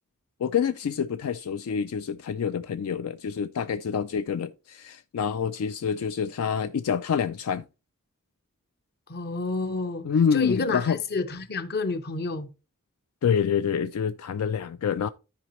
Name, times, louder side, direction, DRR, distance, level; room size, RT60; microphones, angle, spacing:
voice 1, 0.4-7.6 10.0-11.0 13.2-15.1, left 7 dB, 75° left, 0.4 m, -27 dB
voice 2, 9.1-10.1 10.3-12.5, left 3 dB, 45° left, 0.8 m, -29 dB
13.0 x 4.9 x 3.0 m
head